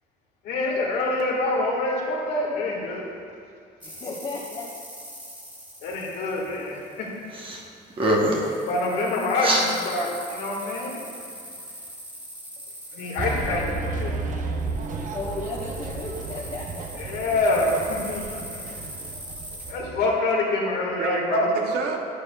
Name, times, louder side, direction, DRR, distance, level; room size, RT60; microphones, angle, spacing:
voice 1, 0.4-3.0 5.8-7.1 8.6-11.0 12.9-13.6 13.9-14.1 17.0-18.6 19.7-21.6, left 2 dB, 80° left, -2 dB, 1.8 m, -26 dB
voice 2, 3.8-4.9 14.8-17.1, left 3 dB, 35° left, -5 dB, 1.1 m, -35 dB
sound 1, 3.8-7.2 8.3-19.7, equal, 10° right, 1.5 m, -41 dB
sound 2, 7.3-7.6 7.9-8.5 9.4-9.7, right 1 dB, 30° right, 1.0 m, -23 dB
sound 3, 13.2-20.2, right 3 dB, 50° right, 0.7 m, -33 dB
voice 3, 14.2-14.9 15.3-15.4 19.8-20.2 20.9-22.0, right 4 dB, 85° right, 1 dB, 1.0 m, -31 dB
9.9 x 8.6 x 2.3 m, 2.3 s
cardioid pair, 110°, 17 cm